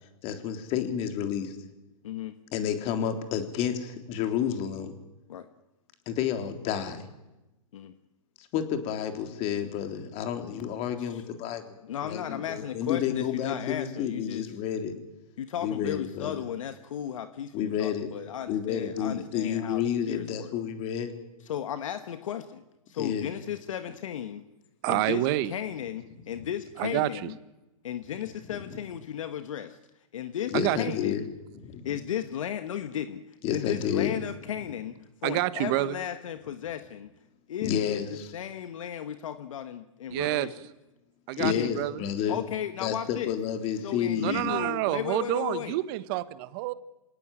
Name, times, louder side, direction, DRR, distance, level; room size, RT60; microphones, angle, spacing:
voice 1, 0.2-1.6 2.5-4.9 6.1-7.0 8.4-11.8 12.0-14.9 15.6-16.4 17.5-18.1 18.5-21.1 23.0-23.3 28.5-28.8 30.5-31.2 31.5-31.9 33.4-34.2 37.6-38.3 40.1-40.2 41.4-42.4 42.8-44.5, left 9 dB, 35° left, 6 dB, 3.6 m, -30 dB
voice 2, 2.0-2.3 5.3-5.5 7.7-7.9 11.1-11.2 11.8-14.5 15.4-20.5 21.4-24.4 24.9-27.3 27.8-29.8 30.1-31.3 31.8-33.2 33.5-37.1 37.5-38.0 38.3-40.5 41.4-41.7 42.3-43.3 43.8-45.8, left 10 dB, 65° left, 10 dB, 1.5 m, -35 dB
voice 3, 24.8-25.5 26.8-27.3 30.5-30.8 35.2-36.0 40.1-40.5 41.3-42.0 44.2-46.7, right 16 dB, 40° right, 15 dB, 1.3 m, -28 dB
28.0 x 18.0 x 9.1 m, 1.0 s
hypercardioid pair, 130°, 18 cm